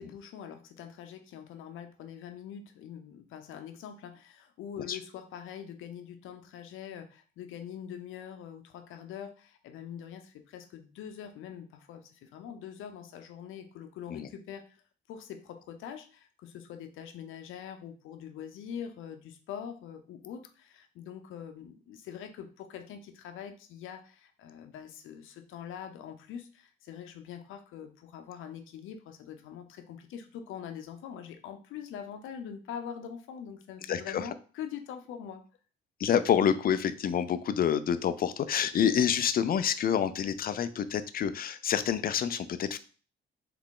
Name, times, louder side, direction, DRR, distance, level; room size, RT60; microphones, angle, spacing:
voice 1, 0.0-14.8 15.1-35.4, left 8 dB, 85° left, 7 dB, 0.7 m, -43 dB
voice 2, 33.9-34.3 36.0-42.8, left 8 dB, 50° left, 13 dB, 0.4 m, -27 dB
3.6 x 3.3 x 3.7 m, 0.39 s
cardioid pair, 90°, 20 cm